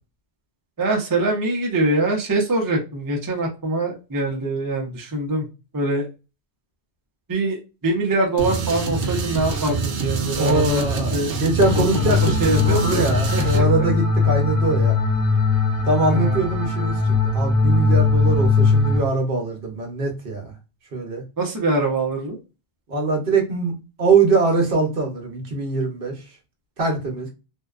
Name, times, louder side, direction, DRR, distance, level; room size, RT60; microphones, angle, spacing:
voice 1, 0.8-5.5 5.7-6.1 7.3-11.4 11.8-13.1 13.3-13.7 16.1-16.4 21.4-22.4, right 2 dB, 25° right, 0.4 m, -24 dB
sound 1, 8.4-13.6, right 5 dB, 80° right, 0.9 m, -26 dB
voice 2, 10.4-15.0 15.9-20.5 20.9-21.2 22.9-26.1 26.8-27.3, right 3 dB, 55° right, 0.9 m, -22 dB
sound 2, 11.6-19.0, left 4 dB, 55° left, 0.7 m, -20 dB
2.6 x 2.1 x 2.3 m
omnidirectional pair, 1.2 m